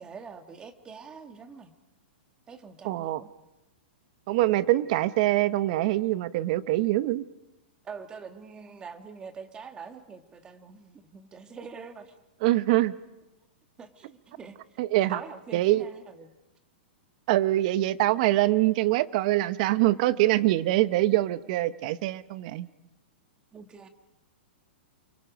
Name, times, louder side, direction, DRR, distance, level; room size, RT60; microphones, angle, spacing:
voice 1, 0.0-1.7 2.5-3.3 7.8-12.2 13.8-16.3 23.5-23.9, right 5 dB, 15° right, 8 dB, 1.5 m, -44 dB
voice 2, 2.8-3.2 4.3-7.3 12.4-12.9 14.8-15.2 15.5-15.8 17.3-22.7, right 16 dB, 40° right, 15 dB, 0.9 m, -24 dB
29.5 x 24.0 x 5.2 m, 1.0 s
hypercardioid pair, 160°, 6 cm